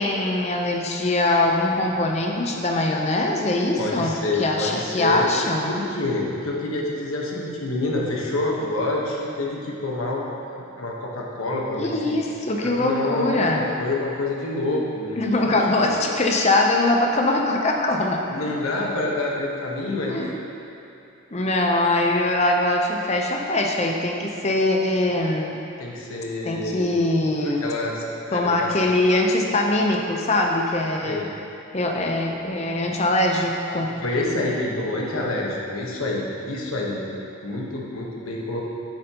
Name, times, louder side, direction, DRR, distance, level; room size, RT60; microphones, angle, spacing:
voice 1, 0.0-5.7 11.8-13.7 15.2-18.2 20.0-20.3 21.3-25.6 26.4-27.7 28.3-31.3 31.7-33.9, left 2 dB, 30° left, 1 dB, 0.6 m, -22 dB
voice 2, 3.8-5.3 5.6-12.2 12.6-15.3 15.5-15.9 18.3-20.3 25.8-27.0 27.4-28.7 31.0-31.3 33.9-38.6, left 2 dB, 80° left, -3 dB, 1.2 m, -27 dB
9.0 x 7.9 x 2.9 m, 2.8 s
head